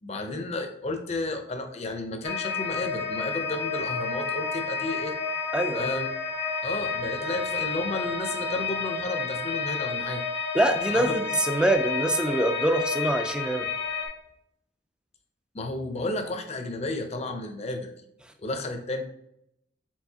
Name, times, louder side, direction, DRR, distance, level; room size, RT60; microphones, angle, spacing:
voice 1, 0.0-5.1 5.7-6.1 6.6-10.2 10.9-11.2 15.5-17.9 18.4-19.0, left 2 dB, 35° left, 5 dB, 0.6 m, -32 dB
sound 1, 2.2-14.1, left 5 dB, 65° left, 1.2 m, -30 dB
voice 2, 5.5-5.9 10.5-13.7, right 1 dB, 5° right, 6 dB, 0.3 m, -24 dB
4.6 x 4.0 x 2.8 m, 0.77 s
head